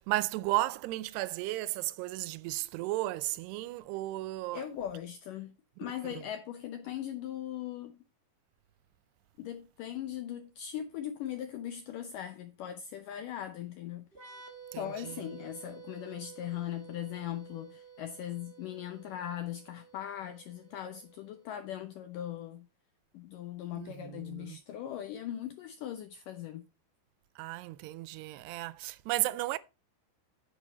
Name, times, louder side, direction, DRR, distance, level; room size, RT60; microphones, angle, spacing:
voice 1, 0.0-4.6 14.7-15.2 23.8-24.6 27.4-29.6, right 18 dB, 85° right, 2.6 m, -34 dB
voice 2, 4.5-8.0 9.4-14.3 14.8-22.7 23.1-26.7, left 11 dB, 80° left, 1.9 m, -40 dB
sound 1, 14.1-21.6, right 7 dB, 50° right, 0.6 m, -52 dB
9.7 x 7.6 x 4.2 m
omnidirectional pair, 4.8 m